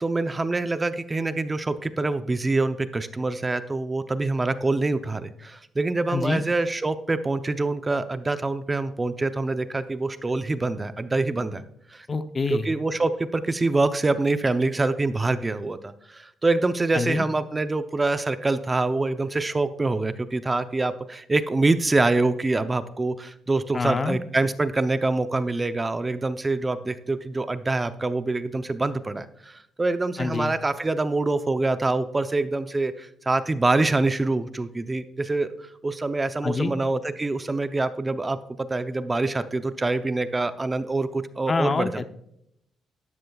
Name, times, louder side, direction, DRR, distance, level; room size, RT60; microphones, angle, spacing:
voice 1, 0.0-11.6 11.9-12.1 12.5-42.0, right 2 dB, 20° right, 11 dB, 0.6 m, -25 dB
voice 2, 6.1-6.4 12.1-12.7 16.9-17.3 23.7-24.2 30.2-30.5 36.4-36.7 41.5-42.1, left 4 dB, 35° left, 11 dB, 0.7 m, -26 dB
12.5 x 11.0 x 2.3 m, 0.76 s
cardioid pair, 90°, 0 cm